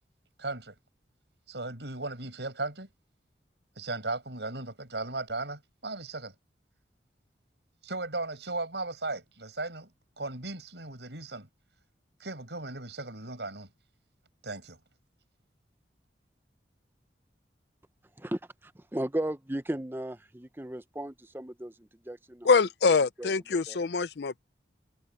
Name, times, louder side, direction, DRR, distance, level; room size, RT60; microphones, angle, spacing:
voice 1, 0.4-0.7 1.5-2.9 3.8-6.3 7.8-9.9 10.2-11.5 12.2-13.7 14.4-14.8, right 2 dB, 80° right, 6.5 m, -36 dB
voice 2, 18.2-22.5 23.2-23.3 23.7-23.8, right 1 dB, 10° right, 0.7 m, -36 dB
voice 3, 22.4-24.4, left 4 dB, 70° left, 0.5 m, -24 dB
head